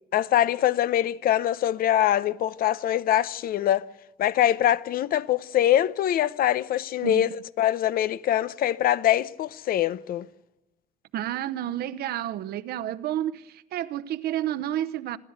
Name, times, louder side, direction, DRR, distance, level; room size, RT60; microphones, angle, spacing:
voice 1, 0.1-3.9 4.2-7.3 7.6-10.3, left 12 dB, 60° left, 0.7 m, -23 dB
voice 2, 11.1-15.2, right 12 dB, 70° right, 0.9 m, -30 dB
26.5 x 12.0 x 8.1 m
cardioid pair, 110°, 17 cm